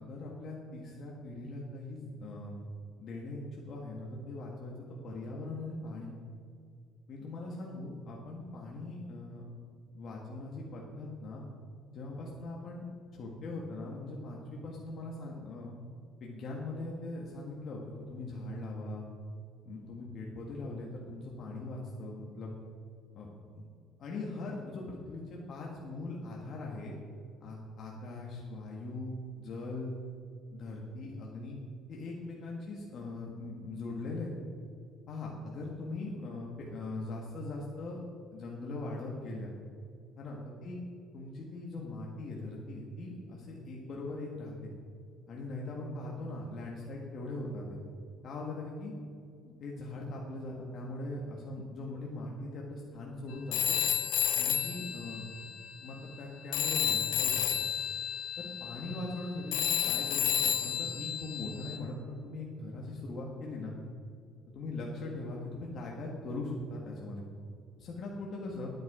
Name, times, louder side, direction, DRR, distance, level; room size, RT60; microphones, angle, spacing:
voice 1, 0.0-2.6 3.0-6.1 7.1-9.4 9.9-11.4 11.9-12.9 13.1-15.7 16.2-17.8 18.1-19.0 19.6-22.5 23.1-23.3 23.5-23.7 24.0-26.9 27.4-29.1 29.4-29.9 30.5-31.6 31.9-34.3 35.1-38.0 38.3-39.5 40.2-40.8 41.1-44.7 45.3-47.8 48.2-48.9 49.6-53.7 54.4-55.5 55.8-57.6 58.4-63.7 64.5-67.2 67.8-68.7, left 2 dB, 50° left, -2 dB, 1.6 m, -40 dB
Telephone, 53.5-56.3 56.5-61.8, left 10 dB, 70° left, 0.8 m, -32 dB
10.5 x 9.5 x 4.9 m, 2.3 s
cardioid pair, 145°, 0 cm